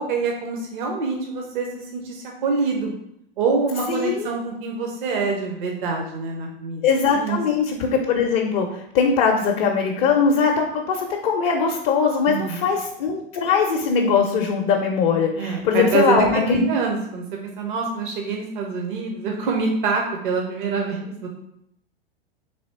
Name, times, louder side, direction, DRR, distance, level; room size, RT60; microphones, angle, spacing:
voice 1, 0.0-2.9 3.4-6.8 7.1-7.4 12.3-12.7 15.3-17.3 17.6-21.3, right 4 dB, 60° right, 1 dB, 0.7 m, -25 dB
voice 2, 3.9-4.3 6.8-16.6, left 5 dB, 40° left, 1 dB, 0.5 m, -21 dB
3.4 x 3.0 x 4.0 m, 0.78 s
figure-of-eight pair, 95°, 29 cm